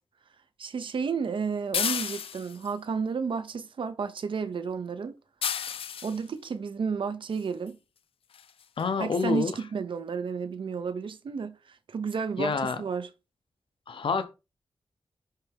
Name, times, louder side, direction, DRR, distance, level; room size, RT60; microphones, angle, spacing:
voice 1, 0.6-5.2 6.0-7.8 9.0-13.1, right 5 dB, 65° right, 0.7 m, -32 dB
sound 1, 1.7-2.7 5.4-6.2 7.7-7.8 8.3-8.5 8.8-8.9 9.2-9.3, left 8 dB, 85° left, 0.4 m, -31 dB
voice 2, 8.8-9.5 12.4-12.8 13.9-14.3, left 5 dB, 65° left, 0.9 m, -27 dB
10.5 x 3.5 x 3.5 m
wide cardioid pair, 130°, 9 cm